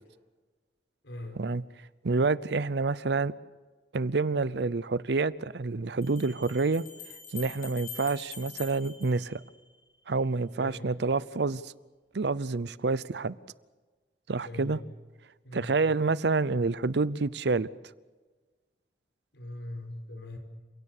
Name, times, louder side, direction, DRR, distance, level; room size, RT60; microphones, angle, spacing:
voice 1, 1.0-1.5 10.5-11.0 14.4-14.8 15.4-15.8 19.3-20.4, left 1 dB, 80° left, 5 dB, 5.1 m, -41 dB
voice 2, 2.0-3.3 3.9-6.8 7.3-9.4 10.1-11.7 12.1-13.3 14.3-14.8 15.5-17.7, right 3 dB, 65° right, 19 dB, 0.6 m, -28 dB
sound 1, 4.4-4.5 6.0-10.0, left 6 dB, 55° left, 6.7 m, -45 dB
30.0 x 17.0 x 6.6 m, 1.4 s
head